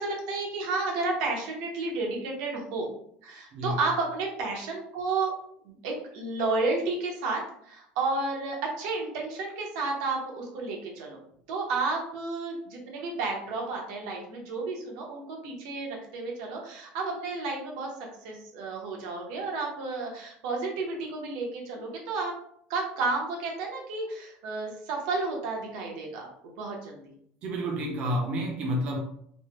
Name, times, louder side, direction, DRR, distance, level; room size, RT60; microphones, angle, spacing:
voice 1, 0.0-2.9 3.2-5.3 5.6-11.2 11.5-17.9 18.2-22.3 22.7-27.1, right 3 dB, 85° right, 0 dB, 0.9 m, -32 dB
voice 2, 27.4-29.0, equal, 35° right, 0 dB, 0.4 m, -29 dB
3.2 x 2.1 x 2.9 m, 0.68 s
cardioid pair, 180°, 4 cm